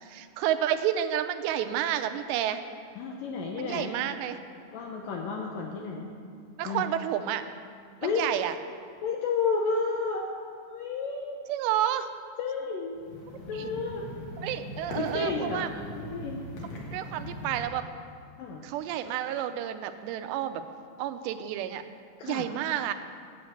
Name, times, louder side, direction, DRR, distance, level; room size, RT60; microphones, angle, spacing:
voice 1, 0.0-2.6 3.6-4.4 6.6-7.4 8.0-8.6 11.5-12.1 13.5-13.7 14.4-15.7 16.9-17.9 18.6-20.6 21.0-21.8 22.2-22.9, right 11 dB, 90° right, 10 dB, 2.8 m, -30 dB
voice 2, 3.0-3.9 4.7-6.1 6.6-6.8 8.0-8.3 9.0-10.3 10.7-11.3 12.4-13.0 13.5-14.1 15.0-15.7 15.9-16.4 18.4-18.7 22.2-22.5, left 4 dB, 75° left, 0 dB, 2.0 m, -31 dB
sound 1, 12.9-17.6, left 1 dB, 55° left, 2.5 m, -40 dB
8.8 x 7.7 x 7.9 m, 2.3 s
omnidirectional pair, 4.8 m